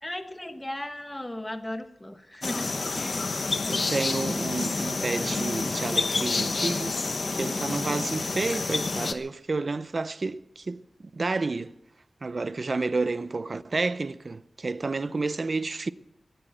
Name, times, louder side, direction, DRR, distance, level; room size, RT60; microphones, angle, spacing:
voice 1, 0.0-3.4, left 1 dB, 15° left, 1.3 m, -36 dB
sound 1, 2.4-9.1, left 3 dB, 55° left, 0.9 m, -28 dB
voice 2, 3.7-6.9 7.4-10.8 11.1-11.7 12.2-15.9, right 3 dB, 45° right, 0.6 m, -30 dB
16.5 x 10.0 x 8.0 m
wide cardioid pair, 110°, 0 cm